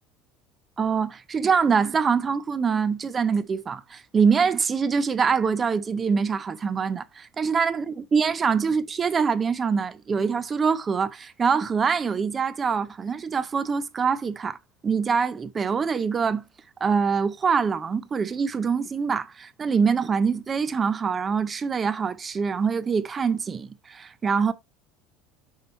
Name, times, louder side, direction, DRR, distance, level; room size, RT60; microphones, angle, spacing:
voice 1, 0.8-14.6 14.8-16.4 16.8-24.5, right 5 dB, 20° right, 0.5 m, -24 dB
5.6 x 5.4 x 4.3 m
cardioid pair, 175°, 0 cm